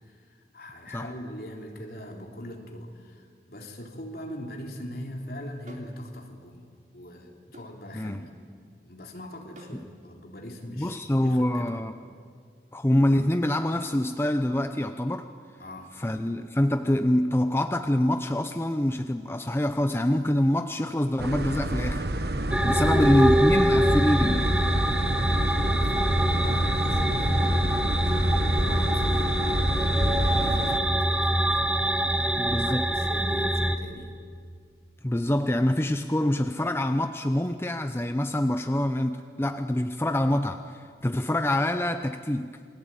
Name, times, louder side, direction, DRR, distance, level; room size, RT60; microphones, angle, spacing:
voice 1, 0.5-6.6 6.9-8.4 8.8-11.7 15.6-16.0 22.7-23.4 25.8-29.3 29.9-31.6 32.0-34.1, equal, 55° left, 1 dB, 3.6 m, -41 dB
sound 1, 5.7-6.0 7.5-7.8 9.6-9.8, right 1 dB, 45° right, 3.1 m, -47 dB
voice 2, 10.6-12.0 12.7-15.3 16.0-22.1 22.6-24.5 32.4-32.9 35.0-42.6, left 1 dB, 15° left, 8 dB, 0.7 m, -25 dB
sound 2, 21.2-30.8, right 1 dB, 60° right, 1.3 m, -28 dB
sound 3, 22.5-33.8, equal, 5° right, 1.1 m, -24 dB
28.5 x 21.5 x 9.1 m, 2.1 s
head